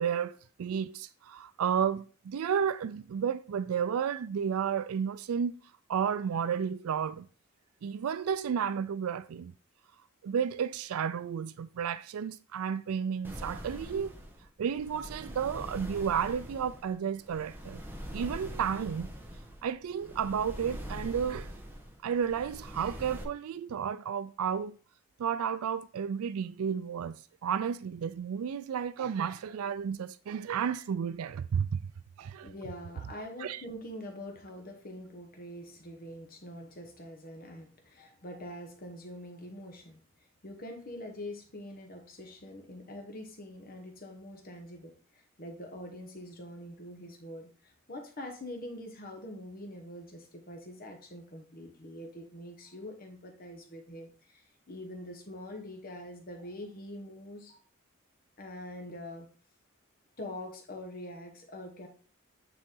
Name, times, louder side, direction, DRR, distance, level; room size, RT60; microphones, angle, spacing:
voice 1, 0.0-5.6 5.9-7.3 7.8-9.5 10.2-14.1 14.6-17.8 18.1-19.1 19.6-21.5 22.0-24.8 25.2-31.8 32.2-32.5 33.4-33.6, right 7 dB, 85° right, 0.4 m, -32 dB
sound 1, 13.2-23.2, equal, 10° right, 1.0 m, -43 dB
voice 2, 32.4-57.6 58.4-59.3 60.2-61.9, left 1 dB, 40° left, 1.1 m, -44 dB
9.2 x 4.0 x 3.7 m
head